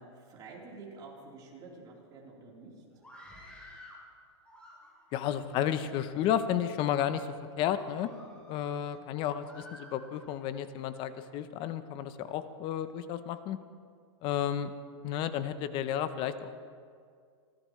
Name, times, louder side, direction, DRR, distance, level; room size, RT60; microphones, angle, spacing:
voice 1, 0.0-2.8 8.9-9.0, right 3 dB, 25° right, -4 dB, 3.7 m, -49 dB
Screaming, 2.9-4.0 4.4-5.2 5.9-6.4 7.0-7.1 7.6-8.6 9.4-10.4, left 1 dB, 5° left, 3.0 m, -52 dB
voice 2, 5.1-7.3 7.6-8.1 8.5-13.6 14.2-14.7 15.0-16.5, left 10 dB, 30° left, 12 dB, 0.7 m, -32 dB
28.5 x 12.5 x 3.2 m, 2.2 s
supercardioid pair, 150°, 16 cm